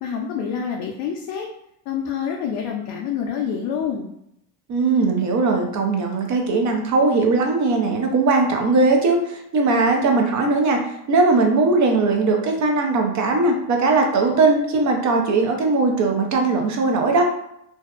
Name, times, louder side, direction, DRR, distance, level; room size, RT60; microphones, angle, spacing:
voice 1, 0.0-1.5 1.9-4.1, left 7 dB, 50° left, 0 dB, 0.5 m, -27 dB
voice 2, 4.7-10.8 11.1-17.2, right 3 dB, 40° right, 2 dB, 0.5 m, -19 dB
2.6 x 2.1 x 2.3 m, 0.77 s
supercardioid pair, 90°, 50 cm